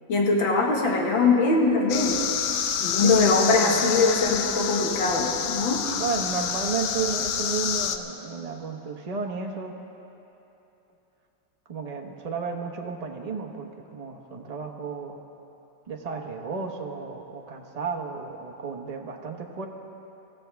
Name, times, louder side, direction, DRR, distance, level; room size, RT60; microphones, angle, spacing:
voice 1, 0.1-2.2 2.8-5.9, left 3 dB, 85° left, -1 dB, 2.4 m, -22 dB
sound 1, 1.9-8.0, left 8 dB, 70° left, 1.2 m, -28 dB
voice 2, 3.0-3.8 5.9-9.7 11.7-15.2 15.9-19.7, right 5 dB, 30° right, 2 dB, 0.8 m, -32 dB
24.0 x 14.5 x 3.5 m, 3.0 s
omnidirectional pair, 2.0 m